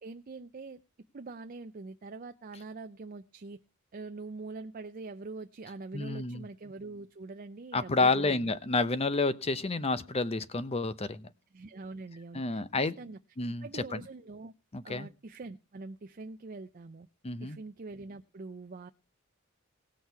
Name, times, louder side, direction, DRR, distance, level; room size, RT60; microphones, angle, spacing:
voice 1, 0.0-0.8 1.1-3.6 3.9-8.4 11.5-12.6 13.0-13.2 13.6-14.5 14.8-17.1 17.4-18.9, right 3 dB, 40° right, 8 dB, 0.5 m, -44 dB
voice 2, 5.9-6.4 7.7-11.3 12.3-12.9 13.4-14.0 14.7-15.1 17.2-17.6, left 3 dB, 30° left, 14 dB, 0.8 m, -30 dB
18.5 x 6.4 x 4.6 m, 0.30 s
head